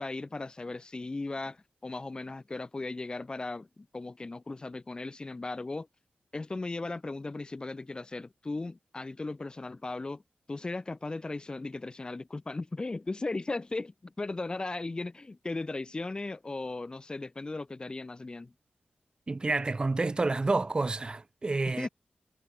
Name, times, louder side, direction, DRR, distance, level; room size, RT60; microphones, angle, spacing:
voice 1, 0.0-5.9 6.3-10.2 10.5-18.5 21.8-21.9, left 3 dB, 25° left, 6.4 m, -37 dB
voice 2, 19.3-21.9, right 3 dB, 30° right, 1.0 m, -29 dB
wide cardioid pair, 140°, 3 cm